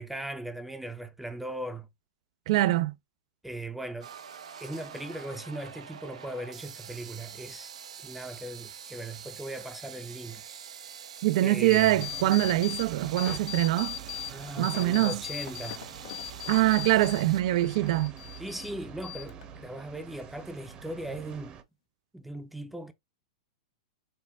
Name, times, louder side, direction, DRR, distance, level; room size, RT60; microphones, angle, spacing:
voice 1, 0.0-1.9 3.4-4.1 4.6-7.7 8.0-10.4 11.4-12.0 14.3-15.9 18.4-21.6 22.1-22.9, right 1 dB, 5° right, 0.6 m, -39 dB
voice 2, 2.5-2.9 11.2-14.0 14.6-15.2 16.5-18.1, right 16 dB, 60° right, 0.4 m, -24 dB
sound 1, 4.0-17.4, right 7 dB, 85° right, 0.7 m, -45 dB
sound 2, 11.7-12.9 13.2-14.3 14.6-17.3 17.6-18.7 19.0-19.6, left 16 dB, 60° left, 0.6 m, -39 dB
sound 3, 11.9-21.6, right 7 dB, 30° right, 0.9 m, -46 dB
5.3 x 2.1 x 3.5 m
hypercardioid pair, 125°, 3 cm